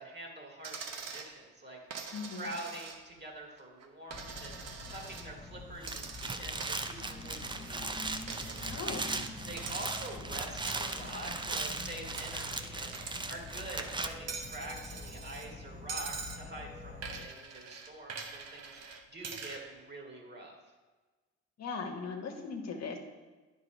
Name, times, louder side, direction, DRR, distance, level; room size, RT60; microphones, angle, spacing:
voice 1, 0.0-8.7 9.5-20.6, right 1 dB, 30° right, 0 dB, 2.2 m, -46 dB
Coin (dropping), 0.6-1.3 1.9-3.2 3.6-5.3 5.8-7.9 8.3-9.3 9.6-10.3 10.7-13.5 13.8-15.5 15.9-16.4 17.0-19.6, right 5 dB, 50° right, 1.0 m, -44 dB
voice 2, 2.1-2.5 8.7-9.2 21.6-23.0, left 4 dB, 55° left, 3 dB, 1.1 m, -39 dB
Insect / Frog, 4.1-17.3, left 3 dB, 20° left, 1.0 m, -46 dB
sound 1, 5.7-14.1, right 3 dB, 15° right, 0.5 m, -38 dB
9.7 x 4.1 x 5.2 m, 1.3 s
hypercardioid pair, 60°, 32 cm